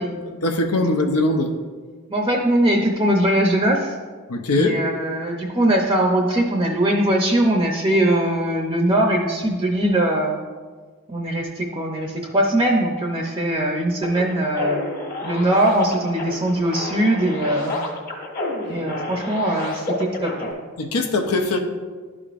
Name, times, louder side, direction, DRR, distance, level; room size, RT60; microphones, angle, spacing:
voice 1, 0.3-1.5 4.3-4.8 20.8-21.6, left 2 dB, 80° left, 3 dB, 0.7 m, -21 dB
voice 2, 2.1-3.9 4.6-10.4 11.1-14.8 15.2-17.8 18.7-20.5, right 1 dB, 20° right, 0 dB, 0.5 m, -21 dB
sound 1, 14.0-20.5, left 2 dB, 40° left, 1.4 m, -30 dB
12.0 x 5.0 x 2.5 m, 1.5 s
head